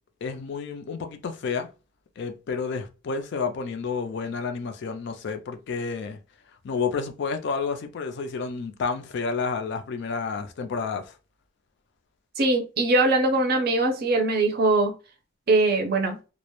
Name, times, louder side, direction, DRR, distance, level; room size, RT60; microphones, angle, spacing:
voice 1, 0.2-1.7 2.2-6.2 6.6-11.2, left 5 dB, 55° left, 0.3 m, -30 dB
voice 2, 12.4-14.9 15.5-16.2, right 2 dB, 50° right, 0.5 m, -21 dB
2.2 x 2.0 x 2.9 m
head